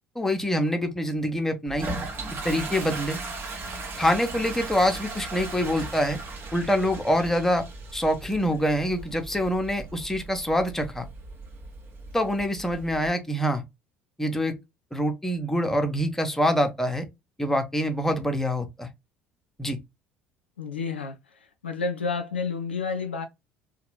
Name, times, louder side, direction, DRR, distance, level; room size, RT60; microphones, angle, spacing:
voice 1, 0.2-1.9 2.4-3.2 4.0-6.2 6.5-7.6 7.9-11.1 12.1-13.6 14.2-14.6 14.9-17.1 17.4-18.9 19.6-19.8, equal, 5° left, 0.8 m, -25 dB
Toilet flush, 1.7-13.1, right 3 dB, 40° right, 1.0 m, -37 dB
voice 2, 20.6-21.2 21.6-23.3, left 4 dB, 80° left, 0.4 m, -29 dB
2.9 x 2.2 x 3.0 m
figure-of-eight pair, 60°, 6 cm